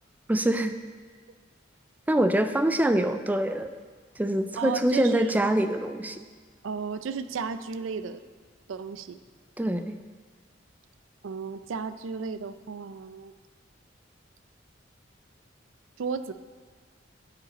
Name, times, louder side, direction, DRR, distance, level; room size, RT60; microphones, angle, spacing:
voice 1, 0.3-0.7 2.1-3.7 4.2-6.2 9.6-10.0, right 1 dB, 10° right, 8 dB, 0.4 m, -24 dB
voice 2, 4.6-5.4 6.6-8.2 8.7-9.2 11.2-13.3 16.0-16.3, right 5 dB, 85° right, 12 dB, 0.4 m, -34 dB
15.0 x 5.1 x 4.1 m, 1.5 s
head